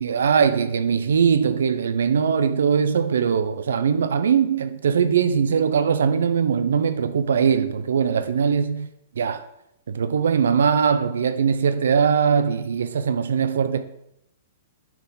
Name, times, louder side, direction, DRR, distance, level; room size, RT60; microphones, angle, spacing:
voice 1, 0.0-8.9 9.2-9.5 9.9-13.9, right 6 dB, 90° right, 0.4 m, -21 dB
6.9 x 4.8 x 3.8 m
hypercardioid pair, 150°, 0 cm